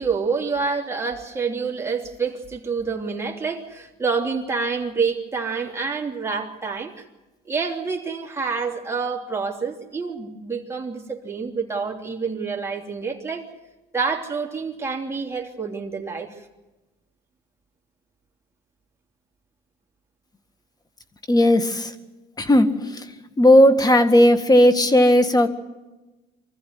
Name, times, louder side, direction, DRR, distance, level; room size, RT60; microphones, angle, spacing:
voice 1, 0.0-7.0 7.5-13.5 13.9-16.3, right 5 dB, 15° right, 0 dB, 3.2 m, -27 dB
voice 2, 21.3-21.9 22.4-23.1 23.4-25.5, left 1 dB, 20° left, 10 dB, 1.9 m, -16 dB
25.0 x 15.0 x 9.6 m, 1.1 s
cardioid pair, 110°, 17 cm